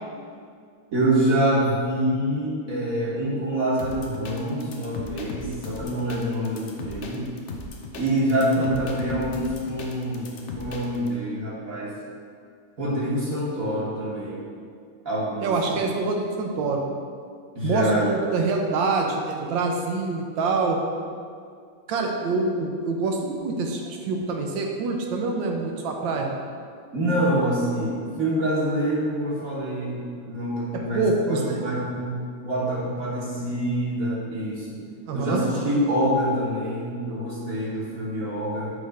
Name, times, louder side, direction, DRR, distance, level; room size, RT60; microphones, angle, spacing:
voice 1, 0.9-7.2 8.0-10.3 10.6-11.9 12.8-14.4 15.0-15.8 17.6-18.1 26.9-34.8 35.1-38.7, right 1 dB, 50° right, -7 dB, 1.3 m, -26 dB
sound 1, 3.8-11.1, left 3 dB, 85° left, 0.6 m, -37 dB
voice 2, 8.6-8.9 15.4-16.8 17.6-20.8 21.9-26.3 30.7-31.7 35.1-35.4, right 3 dB, 80° right, 2 dB, 1.4 m, -25 dB
6.8 x 3.2 x 5.1 m, 2.2 s
omnidirectional pair, 2.1 m